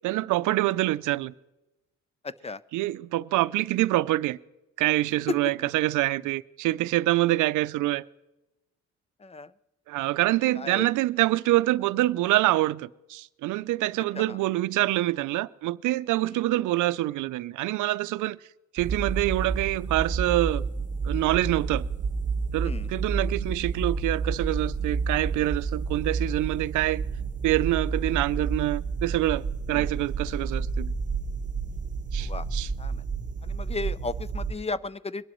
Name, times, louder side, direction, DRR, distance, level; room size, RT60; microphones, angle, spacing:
voice 1, 0.0-1.3 2.7-4.4 4.8-8.0 9.9-18.4 18.7-20.6 21.0-21.9 22.5-27.0 27.4-30.9 32.1-32.7, right 16 dB, 85° right, 0.5 m, -26 dB
voice 2, 2.2-2.6 5.3-5.4 9.2-9.5 10.5-10.9 14.2-14.4 16.3-16.4 22.6-22.9 29.7-29.9 32.2-32.5 32.8-33.0 33.4-35.3, left 3 dB, 20° left, 0.4 m, -34 dB
sound 1, 18.8-34.5, right 4 dB, 25° right, 1.1 m, -30 dB
22.5 x 11.5 x 3.1 m
cardioid pair, 90°, 30 cm